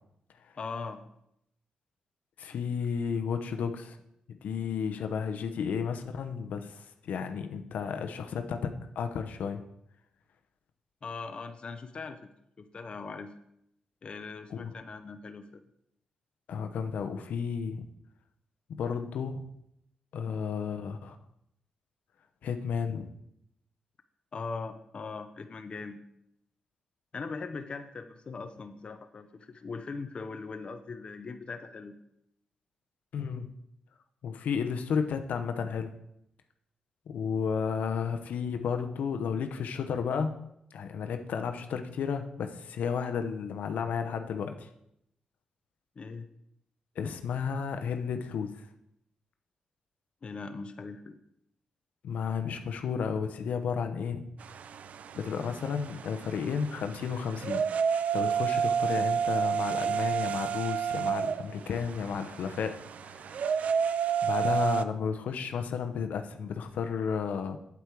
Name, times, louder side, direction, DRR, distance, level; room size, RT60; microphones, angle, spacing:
voice 1, 0.6-1.0 11.0-12.2 12.6-13.3 14.0-15.6 24.3-26.0 27.1-31.9 46.0-46.3 50.2-51.2, left 4 dB, 40° left, 7 dB, 0.7 m, -40 dB
voice 2, 2.4-4.0 4.3-9.6 14.5-14.7 16.5-17.9 18.8-19.4 20.1-21.2 22.4-23.1 33.1-33.5 34.2-35.9 37.1-40.4 40.7-44.7 47.0-48.6 52.0-54.2 55.2-57.6 58.1-63.4 64.2-67.6, left 6 dB, 80° left, 7 dB, 0.9 m, -32 dB
sound 1, 54.4-64.8, right 7 dB, 65° right, 0.4 m, -30 dB
8.3 x 8.2 x 4.7 m, 0.76 s
cardioid pair, 100°, 3 cm